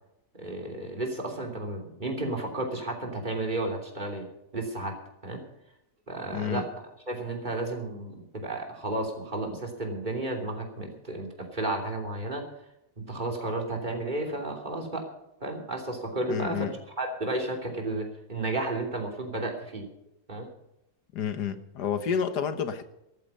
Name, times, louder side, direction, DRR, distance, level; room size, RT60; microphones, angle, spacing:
voice 1, 0.3-4.2 4.5-4.9 5.2-5.4 6.1-6.7 7.1-12.4 13.0-15.1 15.4-16.7 17.0-19.9 20.3-20.5, right 2 dB, 30° right, 1 dB, 3.3 m, -32 dB
voice 2, 6.3-6.6 16.3-16.7 21.1-22.8, left 7 dB, 90° left, 11 dB, 1.8 m, -30 dB
14.0 x 13.5 x 5.5 m, 0.86 s
omnidirectional pair, 1.7 m